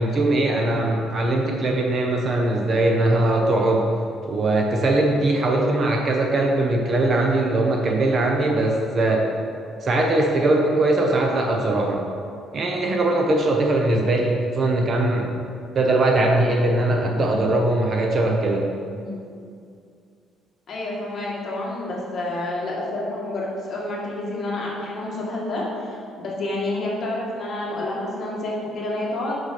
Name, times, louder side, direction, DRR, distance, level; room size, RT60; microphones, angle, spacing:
voice 1, 0.0-3.9 4.2-9.3 9.8-12.0 12.5-15.3 15.7-18.7, right 2 dB, 30° right, 1 dB, 0.7 m, -21 dB
voice 2, 18.9-19.2 20.7-29.3, left 2 dB, 35° left, -4 dB, 1.7 m, -29 dB
5.9 x 5.4 x 5.8 m, 2.4 s
cardioid pair, 165°, 0 cm